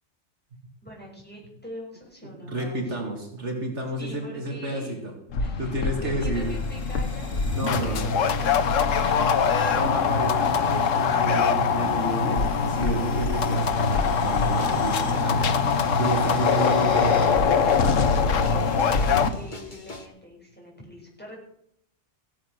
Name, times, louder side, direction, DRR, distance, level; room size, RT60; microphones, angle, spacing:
voice 1, 0.8-3.0 4.0-5.0 5.4-7.3 7.8-9.9 13.2-13.4 18.2-21.4, equal, 5° left, -3 dB, 6.2 m, -43 dB
voice 2, 2.4-5.1 5.6-6.5 7.5-8.1 9.7-15.5 16.0-17.5, right 2 dB, 65° right, 1 dB, 2.5 m, -30 dB
sound 1, 5.3-19.3, left 5 dB, 80° left, 1.3 m, -23 dB
sound 2, 6.3-7.7 8.9-9.2 10.2-18.5, equal, 25° right, 6.4 m, -46 dB
sound 3, 14.2-20.1, equal, 40° left, 1.9 m, -39 dB
16.0 x 9.9 x 6.5 m, 0.71 s
omnidirectional pair, 1.3 m